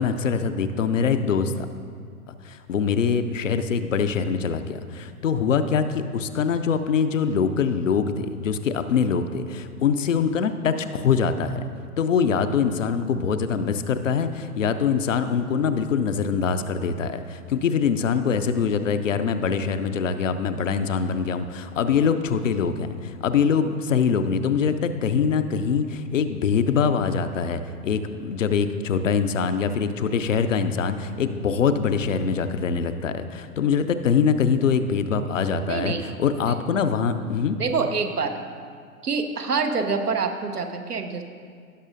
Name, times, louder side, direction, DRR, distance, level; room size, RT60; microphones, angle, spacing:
voice 1, 0.0-1.7 2.3-11.6 12.0-37.6, left 6 dB, 55° left, 9 dB, 0.6 m, -23 dB
voice 2, 35.7-36.1 36.5-36.6 37.6-38.4 39.0-41.2, right 5 dB, 80° right, 6 dB, 1.0 m, -26 dB
16.5 x 6.2 x 2.6 m, 2.1 s
figure-of-eight pair, 115°, 46 cm